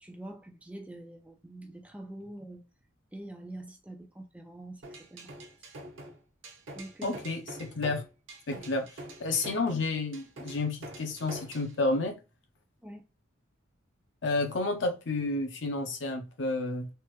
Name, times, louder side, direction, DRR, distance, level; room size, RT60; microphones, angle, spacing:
voice 1, 0.0-2.6 3.1-5.3 6.7-7.2 8.5-8.7 12.8-13.1, right 1 dB, 5° right, 0.4 m, -45 dB
sound 1, 4.8-11.7, right 1 dB, 80° right, 0.9 m, -45 dB
voice 2, 7.0-8.0 8.5-8.8 9.2-12.2 14.2-16.9, left 3 dB, 70° left, 0.7 m, -30 dB
3.3 x 2.1 x 3.0 m
head